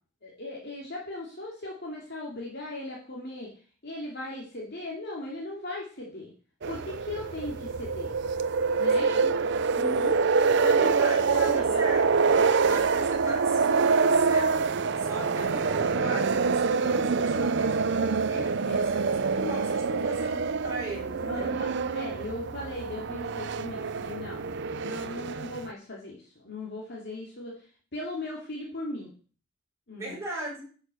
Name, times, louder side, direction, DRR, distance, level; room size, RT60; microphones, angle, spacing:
voice 1, 0.2-3.5 3.8-6.3 6.7-8.1 8.7-9.1 9.7-11.8 12.4-12.5 18.6-18.8 21.2-24.4 24.8-27.5 27.9-29.1 29.9-30.1, left 2 dB, 50° left, -3 dB, 2.5 m, -38 dB
sound 1, 6.6-25.7, right 4 dB, 55° right, 0.5 m, -26 dB
voice 2, 8.9-9.3 10.7-12.1 12.6-21.6 30.0-30.6, right 1 dB, 15° right, -5 dB, 4.7 m, -38 dB
10.0 x 6.5 x 6.2 m, 0.41 s
head